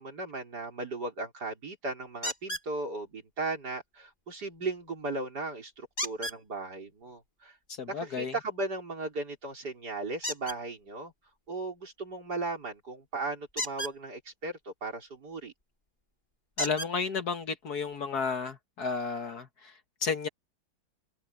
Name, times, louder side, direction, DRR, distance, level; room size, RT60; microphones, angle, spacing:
voice 1, 0.0-7.5 7.9-11.1 11.5-15.5, right 3 dB, 55° right, 4.9 m, -36 dB
sound 1, 2.2-2.7 6.0-6.4 10.2-10.6 13.5-13.9 15.6-15.7 16.6-16.9 17.9-18.0 18.5-18.6, equal, 25° left, 5.5 m, -34 dB
voice 2, 7.7-8.3 16.6-19.7 20.0-20.3, left 5 dB, 55° left, 1.8 m, -32 dB
omnidirectional pair, 2.1 m